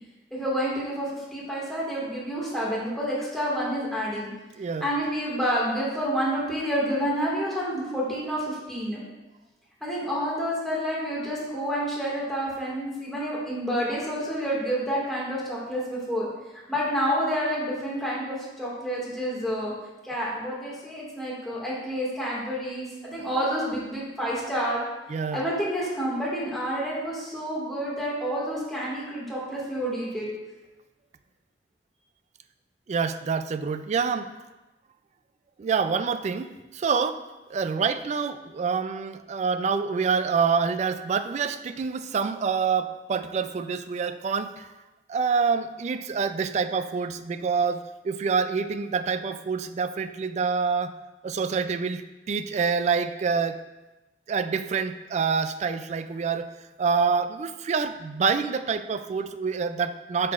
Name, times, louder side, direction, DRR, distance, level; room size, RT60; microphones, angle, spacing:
voice 1, 0.3-4.3 4.8-9.0 9.8-16.3 16.7-19.7 20.0-24.8 25.3-30.3, equal, ahead, -6 dB, 1.9 m, -29 dB
voice 2, 4.6-4.9 25.1-25.4 32.9-34.3 35.6-37.2 37.5-44.7 45.1-50.9 51.2-53.6 54.3-56.5 56.8-60.3, right 5 dB, 40° right, 11 dB, 0.3 m, -26 dB
7.3 x 6.6 x 2.4 m, 1.1 s
head